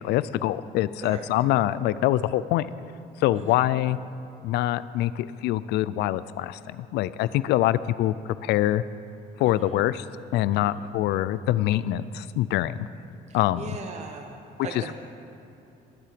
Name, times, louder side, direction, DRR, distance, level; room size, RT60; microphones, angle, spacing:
voice 1, 0.0-2.7 3.2-4.0 4.4-8.1 8.4-8.8 9.4-10.0 10.3-12.9 13.3-13.7, left 14 dB, 80° left, 17 dB, 0.4 m, -24 dB
voice 2, 9.4-9.8 10.5-10.9 13.3-14.3 14.6-14.9, right 5 dB, 40° right, 3 dB, 1.0 m, -39 dB
20.5 x 7.6 x 5.1 m, 2.6 s
cardioid pair, 110°, 17 cm